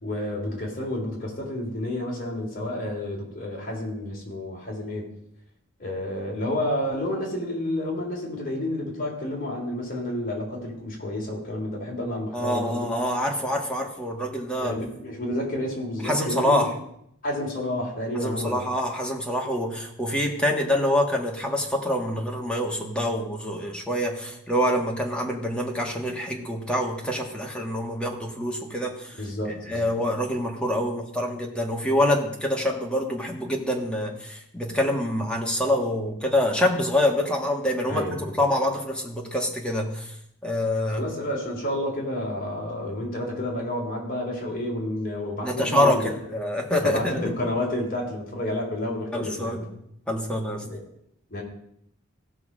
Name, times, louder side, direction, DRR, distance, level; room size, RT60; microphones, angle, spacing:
voice 1, 0.0-5.1 5.8-12.9 14.6-16.7 17.2-18.6 29.2-29.9 37.9-38.3 41.0-46.1 46.8-49.7 50.7-50.8 51.3-51.4, left 1 dB, 45° left, -2 dB, 3.3 m, -30 dB
voice 2, 12.3-14.8 16.0-16.7 18.2-29.1 29.7-40.1 40.4-41.0 45.4-47.3 49.1-49.7 50.1-50.6, left 1 dB, 5° left, 0 dB, 1.6 m, -26 dB
16.5 x 6.0 x 5.0 m, 0.74 s
head